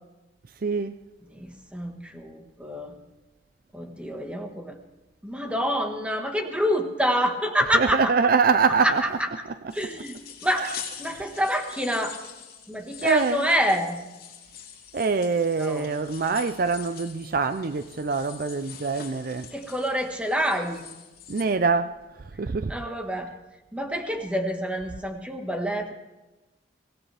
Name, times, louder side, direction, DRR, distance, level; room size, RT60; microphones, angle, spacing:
voice 1, 0.6-1.0 7.7-9.0 10.6-10.7 13.0-13.5 14.9-19.5 21.3-22.7, right 4 dB, 50° right, 0.5 m, -24 dB
voice 2, 1.3-3.0 3.7-4.8 5.2-8.1 8.8-9.3 9.7-10.7 11.0-12.2 12.7-14.0 15.6-15.9 19.5-20.9 22.7-23.3 23.7-25.9, equal, 5° right, 1.5 m, -27 dB
sound 1, 9.7-21.4, left 8 dB, 55° left, 2.8 m, -44 dB
24.0 x 17.0 x 3.4 m
head